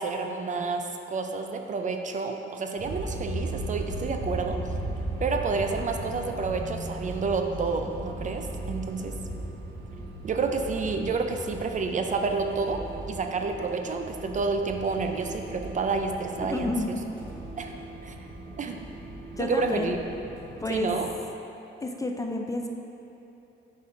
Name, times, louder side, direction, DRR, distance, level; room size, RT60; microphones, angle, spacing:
voice 1, 0.0-4.6 5.2-9.1 10.2-12.8 13.1-17.0 17.6-17.7 18.0-18.1 18.6-18.9 19.4-20.0 20.7-21.1, right 4 dB, 40° right, 4 dB, 0.5 m, -29 dB
sound 1, 2.8-21.1, right 1 dB, 80° right, 1.2 m, -37 dB
voice 2, 16.5-16.9 19.3-19.9 20.6-20.9 21.8-22.7, left 2 dB, 15° left, 3 dB, 0.4 m, -30 dB
7.0 x 4.3 x 3.8 m, 2.8 s
cardioid pair, 90°, 20 cm